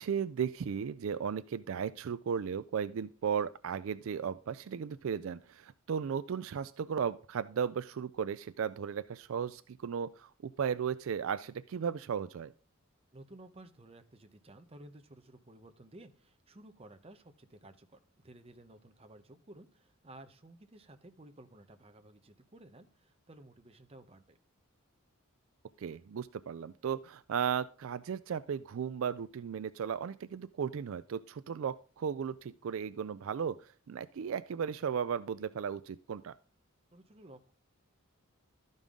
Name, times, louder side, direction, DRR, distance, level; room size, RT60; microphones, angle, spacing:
voice 1, 0.0-12.5 25.8-36.3, right 7 dB, 65° right, 14 dB, 0.4 m, -35 dB
voice 2, 13.1-24.4 36.9-37.5, right 1 dB, 30° right, 8 dB, 0.8 m, -55 dB
13.0 x 5.4 x 3.7 m, 0.39 s
head